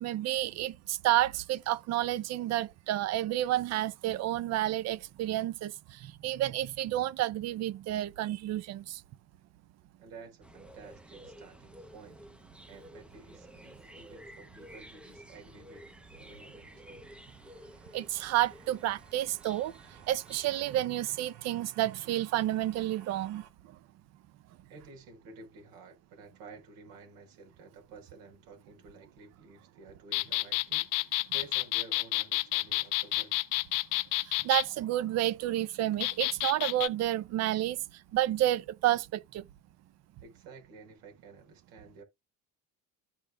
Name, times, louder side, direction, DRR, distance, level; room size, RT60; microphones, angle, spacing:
voice 1, 0.0-9.0 17.9-19.7 20.1-23.4 34.2-37.8 38.1-39.5, right 14 dB, 45° right, 0.7 m, -30 dB
voice 2, 10.0-12.2 12.7-15.9 16.2-17.0 24.7-33.4 40.2-42.0, right 3 dB, 70° right, 4.6 m, -52 dB
sound 1, 10.4-20.9, equal, 5° right, 0.6 m, -52 dB
sound 2, 15.0-23.5, right 10 dB, 85° right, 2.1 m, -58 dB
sound 3, 30.1-34.7 36.0-36.9, left 20 dB, 60° left, 0.7 m, -30 dB
14.5 x 5.1 x 2.3 m
cardioid pair, 165°, 36 cm